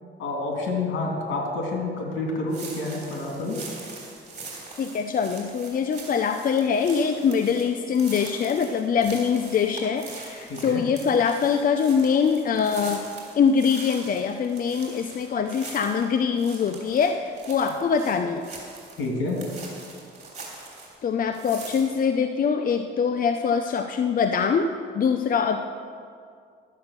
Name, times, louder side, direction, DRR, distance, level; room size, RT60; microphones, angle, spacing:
voice 1, 0.2-3.6 10.5-10.8 19.0-19.4, left 2 dB, 75° left, 0 dB, 3.0 m, -28 dB
sound 1, 2.5-21.0 21.3-22.0, right 3 dB, 35° right, 3.4 m, -42 dB
voice 2, 4.8-13.0 13.4-18.4 21.0-24.7 24.9-25.6, left 6 dB, 45° left, 7 dB, 0.6 m, -23 dB
11.5 x 8.0 x 6.7 m, 2.3 s
cardioid pair, 90°, 20 cm